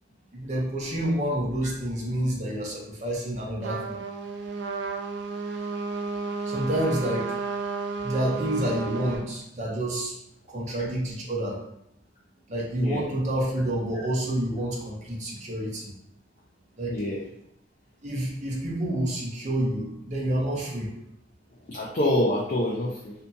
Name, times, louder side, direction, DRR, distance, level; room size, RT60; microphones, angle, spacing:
voice 1, 0.3-4.0 6.5-7.3 8.0-10.1 10.5-11.6 12.5-15.9 16.8-17.0 18.0-20.9, right 1 dB, 40° right, -3 dB, 0.7 m, -28 dB
Trumpet, 3.6-9.3, right 4 dB, 70° right, 0.3 m, -32 dB
voice 2, 16.9-17.2 21.7-23.1, left 1 dB, 45° left, -4 dB, 0.4 m, -26 dB
2.7 x 2.7 x 2.2 m, 0.78 s
head